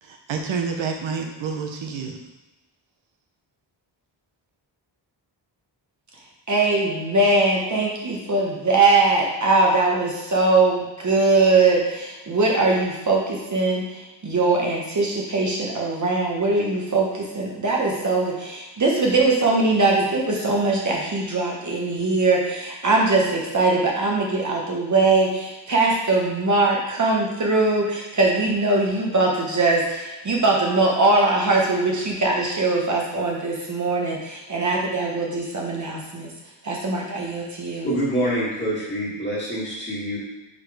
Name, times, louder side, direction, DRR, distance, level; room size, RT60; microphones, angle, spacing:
voice 1, 0.0-2.2, right 5 dB, 85° right, 3 dB, 0.9 m, -29 dB
voice 2, 6.5-13.8 14.2-36.3 36.6-37.9, right 3 dB, 40° right, -2 dB, 1.1 m, -21 dB
voice 3, 37.8-40.2, equal, 25° left, -7 dB, 2.0 m, -25 dB
5.0 x 4.2 x 4.8 m, 1.1 s
wide cardioid pair, 165°, 45 cm